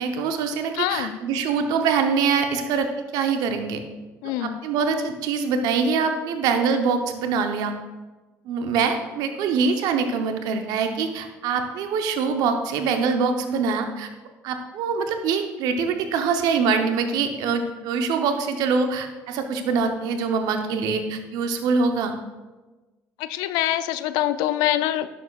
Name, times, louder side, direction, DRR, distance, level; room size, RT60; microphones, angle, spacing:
voice 1, 0.0-2.9 3.1-3.8 4.4-7.7 8.5-14.1 14.4-22.2, right 5 dB, 75° right, 6 dB, 0.8 m, -24 dB
voice 2, 0.8-1.2 4.2-4.6 23.2-25.2, left 13 dB, 80° left, 13 dB, 0.4 m, -25 dB
10.5 x 6.7 x 2.4 m, 1.2 s
supercardioid pair, 70°, 7 cm